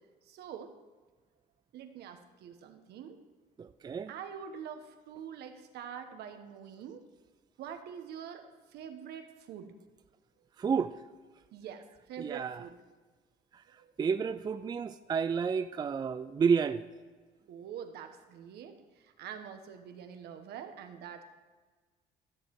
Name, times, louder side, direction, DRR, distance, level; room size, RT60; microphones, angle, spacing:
voice 1, 0.2-0.7 1.7-3.2 4.1-7.0 7.6-9.7 11.5-12.7 13.8-13.9 17.5-21.2, right 8 dB, 75° right, 1.2 m, -45 dB
voice 2, 3.6-4.1 10.6-10.9 12.2-12.6 14.0-16.9, right 6 dB, 25° right, 0.4 m, -30 dB
13.5 x 7.2 x 4.7 m
cardioid pair, 110°, 17 cm